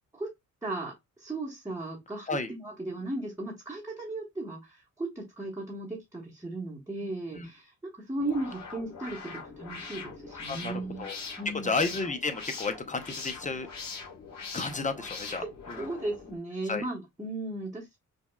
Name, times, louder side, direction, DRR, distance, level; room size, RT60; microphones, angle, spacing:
voice 1, 0.6-0.9 1.2-11.1 11.4-11.7 15.3-18.0, right 2 dB, 10° right, 1.0 m, -36 dB
voice 2, 7.0-7.5 10.5-10.7 11.0-11.1 11.5-13.7 14.5-15.9 16.6-16.8, left 3 dB, 20° left, 0.7 m, -32 dB
sound 1, 8.2-16.4, left 4 dB, 55° left, 1.5 m, -42 dB
5.2 x 2.3 x 2.2 m
cardioid pair, 85°, 33 cm